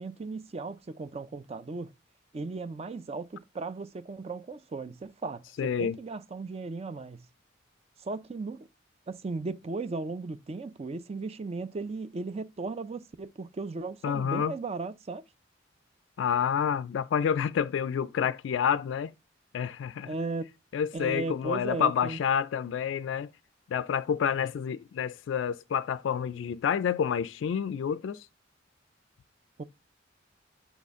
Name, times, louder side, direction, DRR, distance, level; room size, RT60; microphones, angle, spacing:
voice 1, 0.0-1.9 2.3-7.3 8.0-8.7 9.1-15.2 20.1-20.5 20.9-22.2 29.6-29.7, right 3 dB, 30° right, 0.4 m, -36 dB
voice 2, 5.6-6.0 14.0-14.5 16.2-19.1 19.5-20.1 20.7-23.3 23.7-28.3, left 8 dB, 70° left, 0.3 m, -28 dB
6.9 x 4.2 x 3.5 m
head